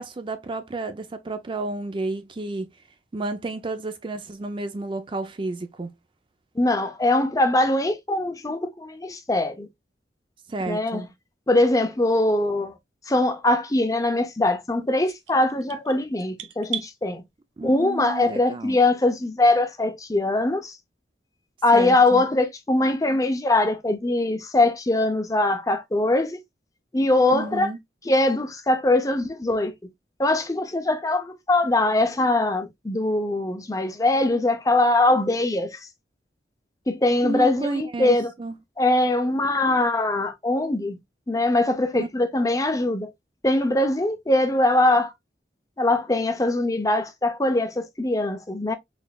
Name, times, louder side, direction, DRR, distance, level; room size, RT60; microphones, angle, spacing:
voice 1, 0.0-2.7 3.1-5.9 10.5-11.1 17.6-18.8 21.7-22.2 27.3-27.8 37.2-38.6 41.9-42.1, right 2 dB, 30° right, 0.4 m, -31 dB
voice 2, 6.6-9.7 10.7-11.0 11.5-12.7 13.1-17.2 17.6-20.8 21.6-26.4 26.9-27.7 28.1-29.9 30.2-35.8 36.9-38.3 38.8-41.0 41.3-43.1 43.4-45.1 45.8-48.7, left 2 dB, 20° left, 0.6 m, -22 dB
sound 1, 15.1-16.9, right 11 dB, 90° right, 0.5 m, -36 dB
4.1 x 3.2 x 2.3 m
head